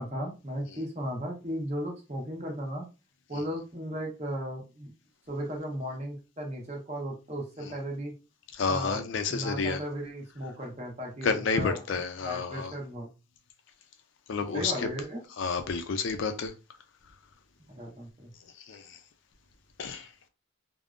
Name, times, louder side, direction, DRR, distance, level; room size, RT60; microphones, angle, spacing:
voice 1, 0.0-2.9 3.3-4.9 5.3-8.1 8.7-9.0 9.3-13.1 14.5-15.2 17.8-18.3, equal, 35° right, 0.9 m, -36 dB
voice 2, 8.5-9.8 11.2-12.7 14.3-14.9 15.4-16.5 18.7-18.9 19.8-20.1, left 4 dB, 65° left, 0.4 m, -30 dB
3.5 x 2.0 x 2.4 m
head